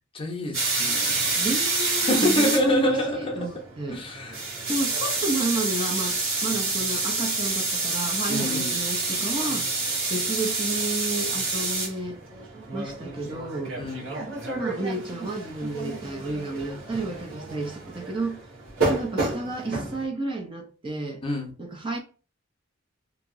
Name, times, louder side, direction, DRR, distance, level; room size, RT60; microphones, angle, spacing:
voice 1, 0.1-1.5 2.0-3.4 3.9-4.4 8.3-8.8 13.8-14.0 21.2-21.5, left 1 dB, 25° left, 0.7 m, -27 dB
sound 1, 0.5-20.1, right 3 dB, 70° right, 1.3 m, -28 dB
voice 2, 1.4-4.0 4.7-9.7 10.1-12.2 12.7-13.8 14.5-18.4 18.9-21.2 21.6-22.0, right 2 dB, 25° right, 0.5 m, -31 dB
2.8 x 2.8 x 2.5 m
head